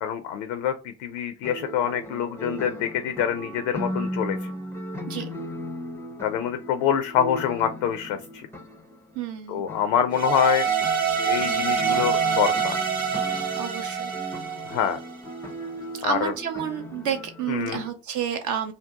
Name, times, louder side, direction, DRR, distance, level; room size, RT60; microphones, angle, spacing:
voice 1, 0.0-4.5 6.2-8.5 9.5-10.7 11.2-12.8 14.7-15.0 16.0-16.3 17.5-17.8, left 9 dB, 55° left, 8 dB, 0.5 m, -26 dB
Lincoln Soundtrack, 1.4-9.3 9.7-17.9, equal, 5° left, 0.6 m, -37 dB
voice 2, 9.1-9.6 13.5-14.1 15.9-18.7, right 8 dB, 45° right, 6 dB, 0.5 m, -30 dB
sound 1, 10.1-15.3, right 7 dB, 80° right, 0.8 m, -26 dB
2.6 x 2.1 x 3.6 m, 0.32 s
figure-of-eight pair, 55°, 43 cm